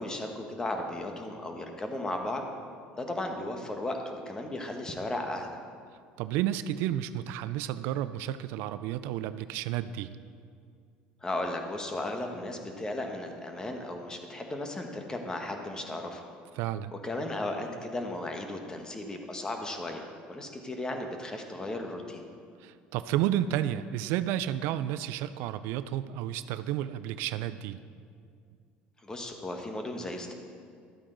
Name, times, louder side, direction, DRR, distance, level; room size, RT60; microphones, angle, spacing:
voice 1, 0.0-2.4 2.9-5.5 11.2-16.2 17.0-22.2 29.0-30.3, left 1 dB, 20° left, 4 dB, 1.2 m, -35 dB
voice 2, 6.2-10.1 16.6-16.9 22.6-27.8, right 12 dB, 75° right, 13 dB, 0.4 m, -31 dB
12.0 x 8.5 x 3.9 m, 2.2 s
supercardioid pair, 110°, 4 cm